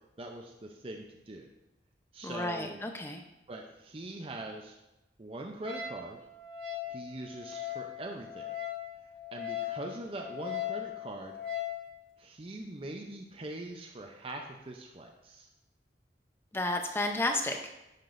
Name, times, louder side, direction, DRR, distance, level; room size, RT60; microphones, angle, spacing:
voice 1, 0.2-1.5 2.1-2.8 3.5-4.8 5.2-6.2 6.9-8.5 9.3-11.3 12.2-15.5, right 2 dB, 30° right, 2 dB, 0.5 m, -42 dB
voice 2, 2.2-3.2 16.5-17.6, left 2 dB, 15° left, 4 dB, 0.6 m, -32 dB
Wind instrument woodwind instrument, 5.7-11.8, left 10 dB, 65° right, 1.1 m, -39 dB
10.5 x 5.9 x 2.6 m, 0.94 s
head